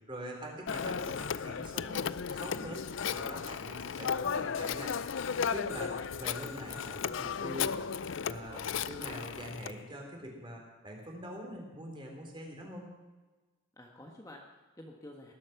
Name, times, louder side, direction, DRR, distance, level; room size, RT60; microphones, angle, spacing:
voice 1, 0.1-7.9 8.2-12.9, equal, 25° right, 0 dB, 3.7 m, -44 dB
Telephone, 0.7-9.7, left 7 dB, 60° left, 0.5 m, -35 dB
voice 2, 0.7-1.3 5.8-6.0 13.8-15.3, left 1 dB, 15° left, 0 dB, 1.4 m, -50 dB
19.5 x 12.0 x 6.0 m, 1.3 s
head